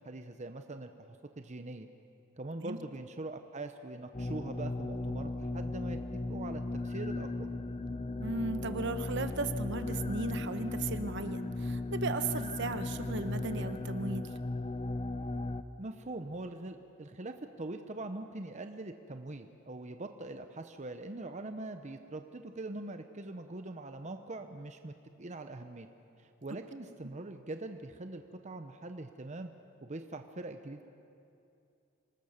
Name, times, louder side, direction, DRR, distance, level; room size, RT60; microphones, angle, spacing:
voice 1, 0.0-1.9 2.3-7.5 15.8-24.9 25.2-25.9 26.2-29.5 29.8-30.8, right 2 dB, 35° right, 7 dB, 0.8 m, -43 dB
sound 1, 4.1-15.6, left 2 dB, 30° left, 0.7 m, -36 dB
voice 2, 8.2-14.3, right 3 dB, 60° right, 10 dB, 1.1 m, -36 dB
26.0 x 19.5 x 6.6 m, 2.6 s
head